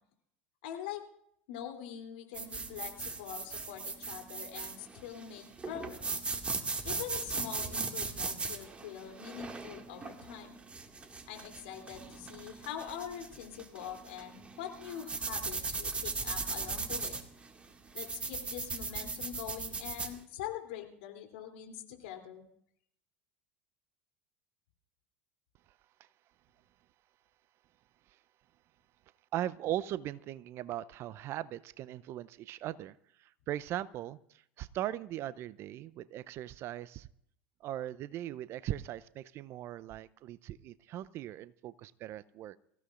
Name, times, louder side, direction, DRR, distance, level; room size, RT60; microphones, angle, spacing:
voice 1, 0.6-1.0 1.5-6.2 6.8-10.6 11.3-17.2 17.9-22.4, left 9 dB, 65° left, 4 dB, 3.1 m, -44 dB
sound 1, 2.3-20.1, right 4 dB, 20° right, 2.0 m, -39 dB
voice 2, 29.3-34.2 34.6-37.1 37.6-42.6, right 13 dB, 45° right, 17 dB, 0.6 m, -39 dB
24.0 x 15.5 x 2.5 m, 0.68 s
hypercardioid pair, 80°, 6 cm